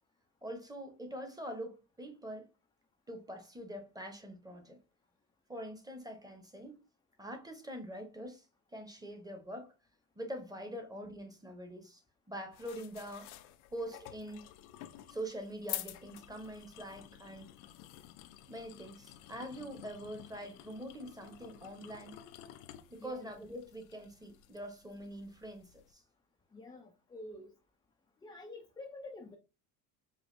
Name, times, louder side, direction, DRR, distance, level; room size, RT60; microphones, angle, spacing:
voice 1, 0.4-2.5 3.1-4.8 5.5-6.8 7.2-8.5 8.7-9.7 10.2-12.0 12.3-13.3 13.7-14.5 15.1-17.5 18.5-22.2 22.9-26.0, equal, 10° right, 0.9 m, -44 dB
sound 1, 12.5-25.9, left 14 dB, 85° left, 0.6 m, -50 dB
voice 2, 23.0-23.3 26.5-27.5 28.2-29.4, left 2 dB, 10° left, 0.4 m, -48 dB
4.9 x 2.5 x 2.6 m
supercardioid pair, 105°, 43 cm